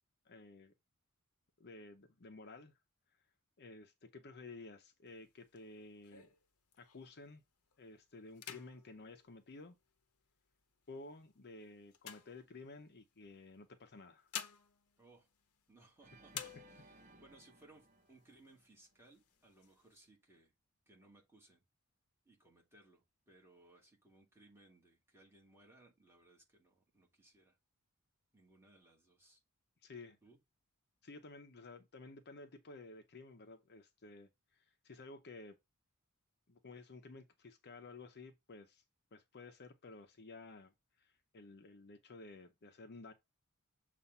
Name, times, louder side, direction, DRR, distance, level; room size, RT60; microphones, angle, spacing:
voice 1, 0.2-0.7 1.6-2.7 3.6-6.3 6.8-7.4 7.8-9.8 10.9-14.3 29.8-30.2 31.0-35.6 36.5-38.8 39.1-43.1, left 3 dB, 50° left, 0.7 m, -53 dB
sound 1, 5.1-7.2 7.7-7.9 8.3-10.2 10.9-13.0 13.9-15.9 16.3-17.1 17.6-17.7 18.0-18.6 19.1-20.0, left 9 dB, 80° left, 0.8 m, -51 dB
voice 2, 15.0-15.3 15.7-20.5 20.9-21.6 22.3-27.6 28.3-29.4 30.2-30.4, right 2 dB, 10° right, 1.9 m, -64 dB
Organ, 16.0-19.1, right 2 dB, 35° right, 0.8 m, -63 dB
7.1 x 2.5 x 5.3 m
head